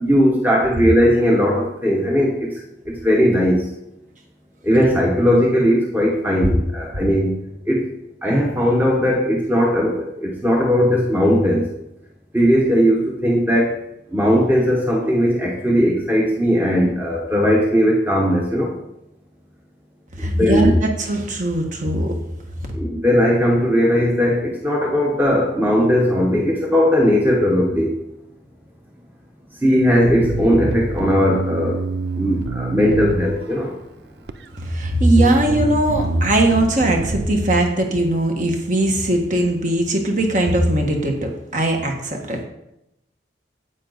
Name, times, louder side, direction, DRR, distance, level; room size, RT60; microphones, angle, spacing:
voice 1, 0.0-3.7 4.6-7.3 7.7-7.9 8.2-11.7 12.3-13.7 14.1-18.7 20.2-20.7 22.7-27.9 29.6-31.8 32.2-33.8, equal, 10° right, -2 dB, 1.1 m, -18 dB
voice 2, 20.2-22.1 22.6-22.7 34.6-42.4, right 1 dB, 40° right, 2 dB, 1.5 m, -19 dB
Bass guitar, 30.1-33.7 34.3-34.8 35.2-37.3, right 3 dB, 60° right, 0.5 m, -27 dB
9.6 x 8.1 x 4.0 m, 0.84 s
head